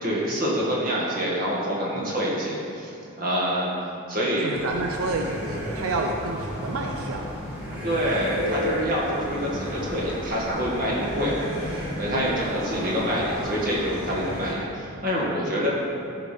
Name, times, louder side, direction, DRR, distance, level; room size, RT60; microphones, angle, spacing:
voice 1, 0.0-2.9 3.2-3.7 4.1-4.5 7.8-15.7, equal, 40° right, -5 dB, 1.9 m, -26 dB
voice 2, 4.4-7.2 7.7-7.9 12.0-12.5, right 3 dB, 85° right, 3 dB, 0.6 m, -30 dB
sound 1, 4.5-14.5, equal, 10° right, 1.9 m, -33 dB
12.5 x 5.9 x 3.5 m, 2.7 s
head